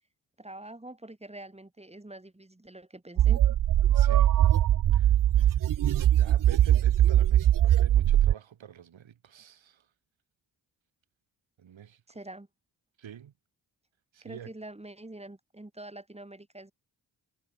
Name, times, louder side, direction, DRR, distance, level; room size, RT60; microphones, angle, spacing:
voice 1, 0.4-3.4 12.1-12.5 14.2-16.7, right 1 dB, 15° right, 3.2 m, -45 dB
sound 1, 3.2-8.3, right 12 dB, 45° right, 0.5 m, -21 dB
voice 2, 3.9-4.4 4.9-5.1 5.4-5.6 6.1-9.8 11.6-12.0 13.0-13.3 14.1-14.5, right 9 dB, 80° right, 2.9 m, -46 dB
cardioid pair, 60°, 45 cm